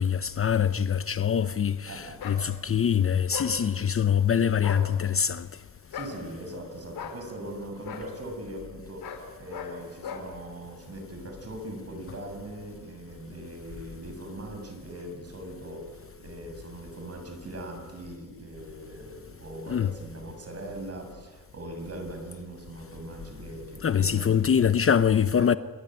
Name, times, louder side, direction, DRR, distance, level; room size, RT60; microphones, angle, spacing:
voice 1, 0.0-5.5 19.7-19.9 23.8-25.6, left 8 dB, 40° left, 0.7 m, -24 dB
voice 2, 1.9-2.4 5.9-24.4 25.4-25.5, right 1 dB, 40° right, 7.5 m, -40 dB
sound 1, 2.2-2.4 3.3-3.5 4.6-4.9 5.9-6.2 6.9-7.2 7.8-8.1 9.0-9.2 9.5-9.7 10.0-10.3, left 6 dB, 80° left, 4.0 m, -37 dB
28.5 x 20.5 x 9.1 m
cardioid pair, 105°, 36 cm